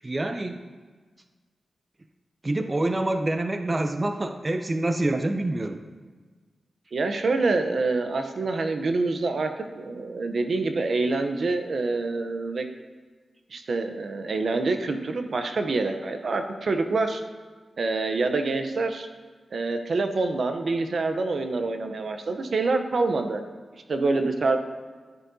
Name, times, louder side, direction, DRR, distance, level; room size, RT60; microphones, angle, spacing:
voice 1, 0.0-0.6 2.4-5.8, right 2 dB, 35° right, 6 dB, 0.5 m, -26 dB
voice 2, 6.9-12.7 13.5-17.2 17.8-19.1 19.5-23.4 23.9-24.6, right 3 dB, 65° right, 7 dB, 0.7 m, -26 dB
12.5 x 7.6 x 2.7 m, 1.4 s
cardioid pair, 55°, 0 cm